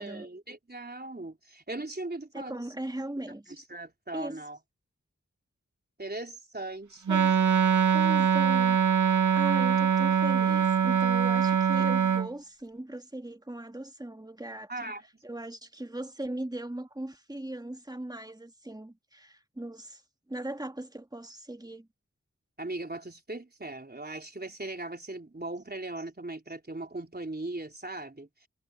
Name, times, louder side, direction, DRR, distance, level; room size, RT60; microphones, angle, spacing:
voice 1, 0.0-2.7 3.5-4.6 6.0-7.3 14.7-15.0 22.6-28.5, right 2 dB, 35° right, 3.9 m, -39 dB
voice 2, 2.3-3.6 4.1-4.4 7.1-7.4 7.9-8.8 9.0-14.9 15.2-20.0 20.3-21.9, right 1 dB, 15° right, 1.6 m, -39 dB
Wind instrument woodwind instrument, 7.1-12.3, right 7 dB, 85° right, 0.7 m, -23 dB
wide cardioid pair, 60°, 29 cm